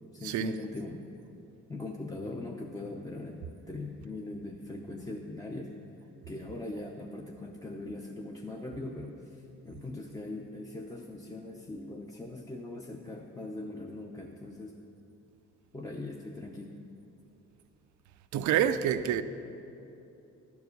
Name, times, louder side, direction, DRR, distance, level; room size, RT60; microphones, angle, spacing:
voice 1, 0.1-1.1 1.7-5.7 6.3-14.8 15.7-16.8, left 2 dB, 10° left, 0.5 m, -41 dB
voice 2, 18.3-19.2, right 10 dB, 75° right, 0.5 m, -27 dB
11.0 x 4.7 x 6.6 m
cardioid pair, 90°, 30 cm